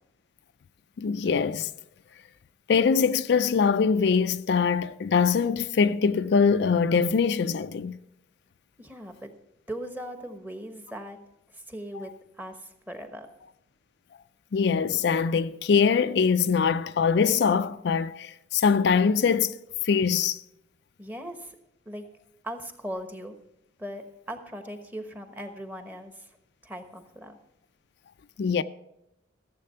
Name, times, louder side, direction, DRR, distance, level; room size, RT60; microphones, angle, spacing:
voice 1, 1.0-1.7 2.7-8.0 14.5-19.6 19.8-20.4 28.4-28.6, left 6 dB, 60° left, 0.4 m, -23 dB
voice 2, 8.8-9.3 9.7-11.2 11.5-12.1 12.4-13.3 21.0-21.5 21.8-22.0 22.4-23.3 23.8-26.3 26.6-27.4, equal, 10° right, 1.1 m, -39 dB
15.0 x 7.6 x 5.6 m
head